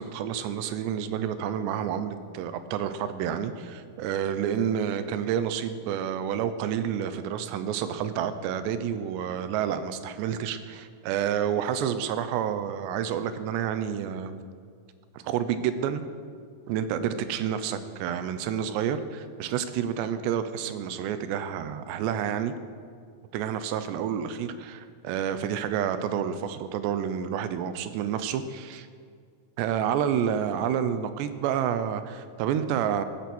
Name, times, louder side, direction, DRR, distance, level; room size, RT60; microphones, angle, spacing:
voice 1, 0.0-14.4 15.2-16.0 16.7-22.5 23.3-28.9 29.6-33.1, right 9 dB, 85° right, 11 dB, 3.0 m, -29 dB
15.5 x 14.0 x 6.1 m, 2.1 s
omnidirectional pair, 4.9 m